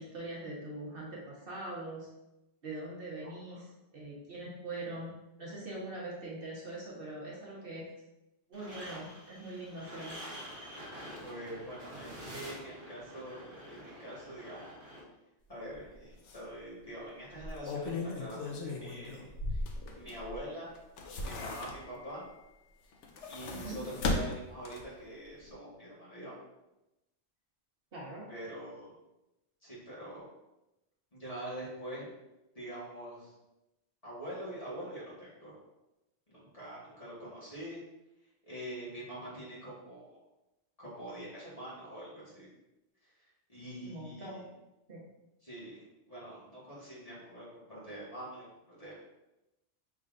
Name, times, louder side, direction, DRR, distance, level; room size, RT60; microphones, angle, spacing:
voice 1, 0.0-2.1 2.6-7.9 8.5-10.2 23.5-23.8 27.9-28.3 43.8-44.4 44.9-45.0, right 2 dB, 55° right, -5 dB, 1.2 m, -42 dB
voice 2, 3.2-3.6 11.2-14.7 15.5-19.6 19.9-20.7 21.2-22.2 23.2-26.3 28.3-28.9 29.6-30.3 31.1-32.1 32.5-33.3 34.0-35.6 36.3-37.8 38.5-40.2 40.8-42.5 43.0-43.1 43.5-44.4 45.4-45.8 46.1-49.0, right 1 dB, 30° left, -8 dB, 1.7 m, -44 dB
sound 1, 8.5-15.0, equal, 20° right, 1.3 m, -47 dB
sound 2, 15.7-15.9 16.3-16.4 17.3-20.4 20.8-22.1 22.9-25.0 25.4-25.5, left 2 dB, 80° left, 1.0 m, -37 dB
5.4 x 3.7 x 2.5 m, 0.95 s
omnidirectional pair, 1.2 m